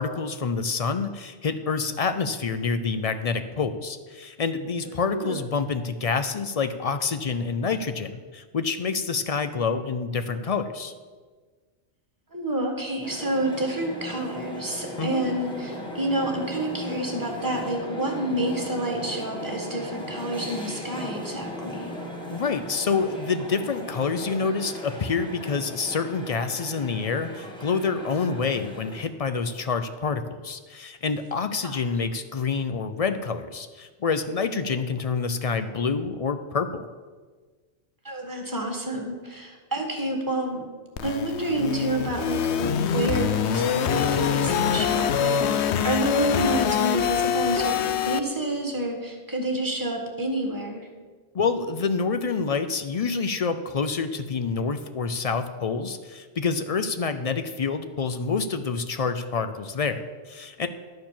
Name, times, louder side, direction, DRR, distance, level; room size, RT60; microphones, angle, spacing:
voice 1, 0.0-10.9 15.0-15.2 22.3-36.9 51.3-60.7, left 5 dB, 50° left, 9 dB, 0.4 m, -27 dB
voice 2, 4.8-5.4 12.3-21.9 31.6-31.8 38.0-40.6 41.0-50.9, right 1 dB, 15° right, 2 dB, 1.6 m, -29 dB
sound 1, 13.0-29.1, equal, 5° left, 1.4 m, -37 dB
sound 2, 41.0-48.2, left 8 dB, 75° left, 0.8 m, -24 dB
11.5 x 4.7 x 7.3 m, 1.4 s
omnidirectional pair, 1.2 m